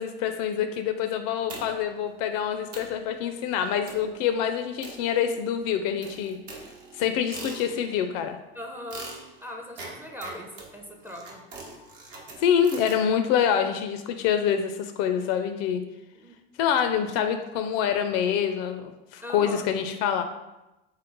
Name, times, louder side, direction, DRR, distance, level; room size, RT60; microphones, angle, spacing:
voice 1, 0.0-6.4 7.0-8.4 12.4-15.8 16.6-20.2, left 8 dB, 55° left, 8 dB, 0.4 m, -26 dB
sound 1, 1.5-2.0 2.4-2.5 2.7-3.0 3.9-4.2 4.8-5.5 6.0-8.0 8.9-13.0, right 3 dB, 50° right, 0.9 m, -43 dB
voice 2, 8.5-9.1 9.4-11.4 16.1-16.3 19.2-19.7, left 1 dB, 5° right, 0 dB, 0.6 m, -39 dB
3.7 x 2.0 x 3.8 m, 0.99 s
hypercardioid pair, 75°, 31 cm